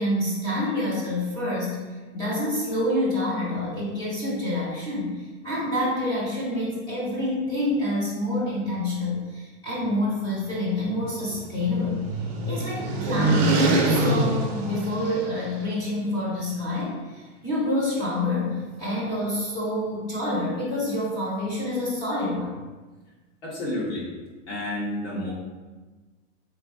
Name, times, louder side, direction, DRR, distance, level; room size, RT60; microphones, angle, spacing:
voice 1, 0.0-1.8 2.1-12.0 12.5-22.5, left 1 dB, 10° left, -9 dB, 0.5 m, -27 dB
sound 1, 10.8-15.6, right 2 dB, 35° right, 0.6 m, -25 dB
voice 2, 23.4-24.1 24.5-25.3, left 1 dB, 80° left, -6 dB, 1.3 m, -30 dB
3.1 x 2.5 x 3.5 m, 1.3 s
supercardioid pair, 170°, 35 cm